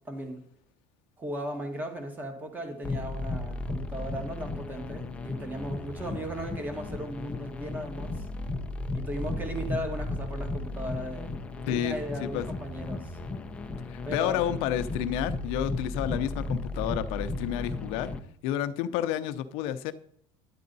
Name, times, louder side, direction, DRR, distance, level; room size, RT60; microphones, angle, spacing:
voice 1, 0.0-0.4 1.2-8.2 8.9-11.3 11.6-13.2 14.0-14.4, right 1 dB, 15° right, 5 dB, 1.6 m, -37 dB
sound 1, 2.8-18.2, left 2 dB, 10° left, 0.6 m, -35 dB
voice 2, 11.7-12.4 13.9-18.1 18.4-19.9, left 11 dB, 65° left, 11 dB, 0.7 m, -30 dB
10.5 x 8.5 x 4.0 m, 0.68 s
cardioid pair, 160°, 10 cm